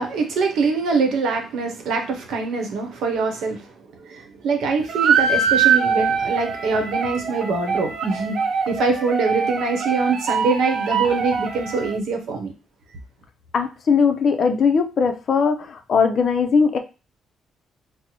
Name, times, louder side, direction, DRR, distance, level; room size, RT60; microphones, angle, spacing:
voice 1, 0.0-8.4 8.7-12.5, right 4 dB, 80° right, 3 dB, 0.8 m, -24 dB
sound 1, 4.9-12.0, right 6 dB, 60° right, 0.3 m, -23 dB
voice 2, 13.5-16.8, left 5 dB, 55° left, 7 dB, 0.4 m, -19 dB
4.0 x 2.0 x 2.9 m, 0.32 s
cardioid pair, 90°, 0 cm